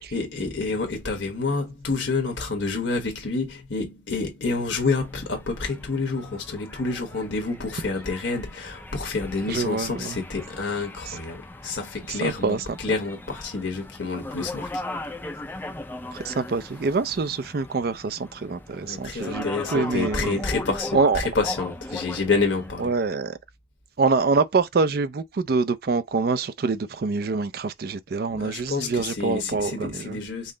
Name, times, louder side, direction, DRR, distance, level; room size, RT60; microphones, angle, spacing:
voice 1, 0.1-14.8 18.8-22.9 28.3-30.5, left 3 dB, 70° left, 1.2 m, -28 dB
sound 1, 4.8-23.1, left 1 dB, 10° left, 0.4 m, -39 dB
voice 2, 9.5-10.2 12.2-12.6 16.1-19.5 19.7-20.4 20.9-21.2 22.8-23.4 24.0-30.2, right 4 dB, 55° right, 0.4 m, -25 dB
5.4 x 2.0 x 3.8 m
head